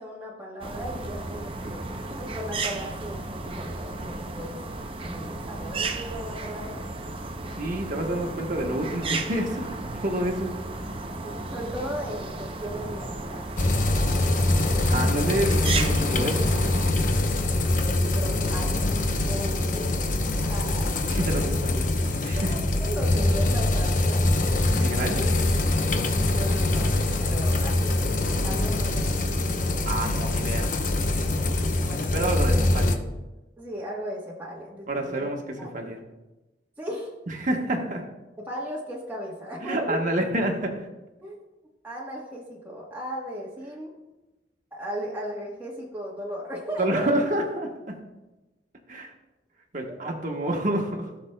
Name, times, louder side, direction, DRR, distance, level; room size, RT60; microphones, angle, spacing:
voice 1, 0.0-1.8 2.1-4.6 5.0-6.8 11.2-13.6 17.4-19.0 19.2-20.0 20.4-21.5 22.3-24.3 26.2-26.9 27.2-29.2 31.8-32.5 33.6-35.3 35.6-35.7 36.8-37.1 38.4-40.0 41.2-41.4 41.8-43.9 44.7-47.1 49.9-50.1, equal, 10° right, -5 dB, 1.1 m, -36 dB
sound 1, 0.6-16.9, right 3 dB, 30° right, 0.6 m, -34 dB
voice 2, 7.6-10.6 14.9-16.4 21.1-21.8 22.2-22.6 24.8-25.3 29.9-30.7 32.1-33.0 34.9-36.0 37.3-38.0 39.6-40.8 46.8-47.9 48.9-49.1 49.7-51.1, right 1 dB, 50° right, 1 dB, 1.2 m, -28 dB
sound 2, 13.6-32.9, left 2 dB, 50° left, 0.8 m, -24 dB
17.0 x 5.8 x 2.2 m, 1.0 s
head